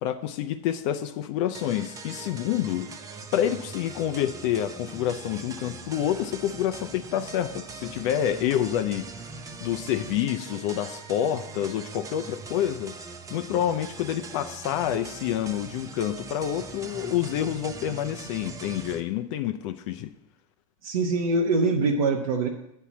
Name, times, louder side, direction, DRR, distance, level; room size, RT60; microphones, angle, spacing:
voice 1, 0.0-2.9 3.3-9.1 9.6-12.9 13.3-20.1, left 11 dB, 60° left, 0.5 m, -28 dB
sound 1, 1.5-19.0, right 4 dB, 20° right, 0.7 m, -41 dB
voice 2, 20.8-22.5, right 3 dB, 85° right, 0.9 m, -23 dB
8.5 x 4.5 x 7.1 m
hypercardioid pair, 110°, 18 cm